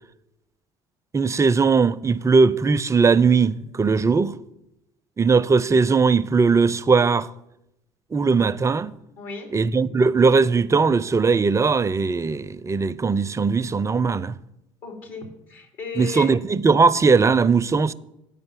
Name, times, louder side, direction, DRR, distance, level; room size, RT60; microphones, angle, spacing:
voice 1, 1.1-4.4 5.2-7.3 8.1-8.9 9.5-14.4 16.0-17.9, right 4 dB, 20° right, 0.4 m, -19 dB
voice 2, 9.2-9.5 14.8-16.3, left 5 dB, 70° left, 2.6 m, -35 dB
9.0 x 5.4 x 7.2 m
hypercardioid pair, 65°, 14 cm